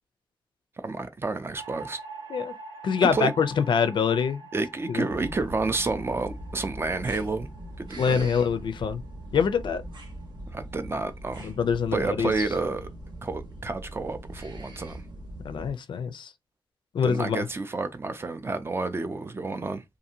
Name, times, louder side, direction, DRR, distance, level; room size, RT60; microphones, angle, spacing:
voice 1, 0.8-2.0 3.0-3.3 4.5-7.5 7.8-8.3 10.5-11.5 11.9-12.9 13.2-15.0 17.0-19.8, right 3 dB, 30° right, 0.4 m, -30 dB
sound 1, 1.5-11.9, right 3 dB, 85° right, 1.1 m, -46 dB
voice 2, 2.8-4.4 4.9-5.0 8.0-9.0 9.3-9.8 11.4-12.3 15.4-16.3 16.9-17.5, left 6 dB, 65° left, 0.4 m, -25 dB
sound 2, 5.1-15.7, right 1 dB, 65° right, 0.9 m, -41 dB
2.6 x 2.4 x 2.7 m
wide cardioid pair, 120°, 9 cm